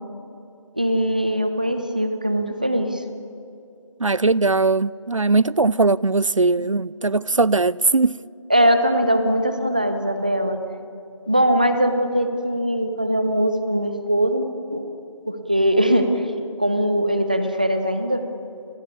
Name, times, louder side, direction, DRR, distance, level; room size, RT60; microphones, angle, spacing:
voice 1, 0.8-3.0 8.5-10.6 11.3-14.8 15.3-16.2 16.6-18.3, equal, 15° right, 0.8 m, -21 dB
voice 2, 4.0-8.2, right 3 dB, 75° right, 0.6 m, -19 dB
30.0 x 21.0 x 8.3 m
figure-of-eight pair, 175°, 17 cm